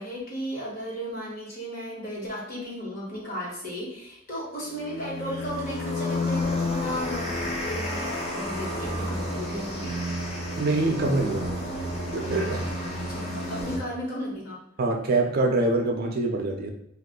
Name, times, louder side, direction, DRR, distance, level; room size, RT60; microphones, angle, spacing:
voice 1, 0.0-9.9 13.0-14.6, equal, 50° left, -5 dB, 1.2 m, -35 dB
sound 1, 4.7-13.8, left 1 dB, 35° left, 0.6 m, -31 dB
voice 2, 10.6-11.5 12.1-12.7 14.8-16.7, right 2 dB, 50° right, 2 dB, 0.5 m, -25 dB
2.6 x 2.3 x 3.7 m, 0.77 s
head